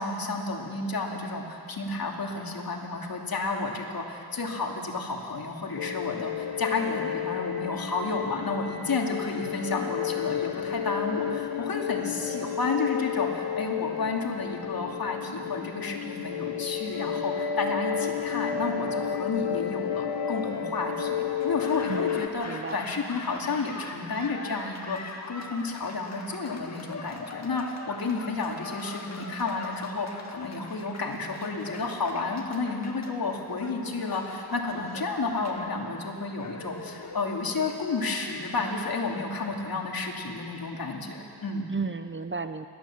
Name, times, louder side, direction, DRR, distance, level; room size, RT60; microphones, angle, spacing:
voice 1, 0.0-41.7, left 3 dB, 60° left, 1 dB, 2.8 m, -31 dB
sound 1, 5.8-22.3, left 8 dB, 90° left, 1.2 m, -31 dB
Laughter / Applause, 21.4-39.5, left 3 dB, 40° left, 1.9 m, -43 dB
voice 2, 21.9-22.8 41.7-42.7, right 4 dB, 30° right, 10 dB, 0.7 m, -33 dB
29.5 x 12.5 x 7.4 m, 2.6 s
cardioid pair, 85°, 40 cm